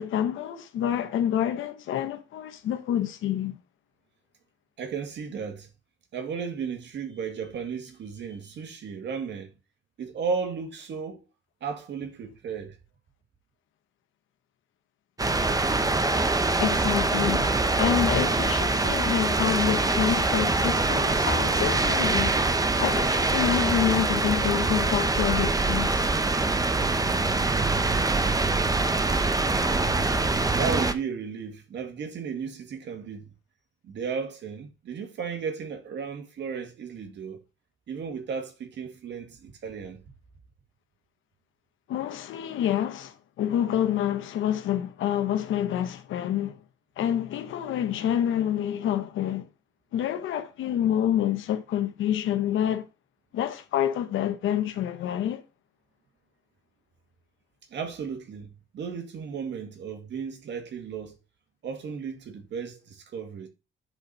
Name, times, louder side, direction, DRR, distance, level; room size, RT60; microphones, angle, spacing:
voice 1, 0.0-3.6 16.6-22.4 22.8-26.0 41.9-46.6 47.0-49.5 49.9-52.9 53.3-55.4, left 10 dB, 80° left, 1.2 m, -27 dB
voice 2, 4.8-5.7 6.1-9.5 10.0-11.2 11.6-12.8 28.7-29.3 30.0-33.3 33.8-37.4 37.9-40.0 57.7-61.2 61.6-63.5, right 6 dB, 65° right, 1.9 m, -35 dB
sound 1, 15.2-30.9, right 3 dB, 20° right, 0.8 m, -24 dB
9.9 x 4.1 x 4.2 m
cardioid pair, 90°, 20 cm